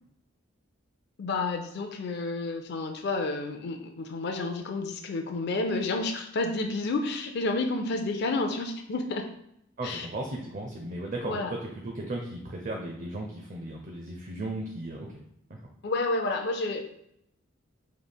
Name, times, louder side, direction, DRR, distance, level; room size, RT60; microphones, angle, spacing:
voice 1, 1.2-9.3 9.8-10.1 11.2-11.5 15.8-16.8, left 3 dB, 50° left, 4 dB, 0.4 m, -30 dB
voice 2, 9.8-11.6 11.8-15.1 15.5-15.6, right 2 dB, 40° right, 0 dB, 0.5 m, -36 dB
5.2 x 3.1 x 2.2 m, 0.77 s
head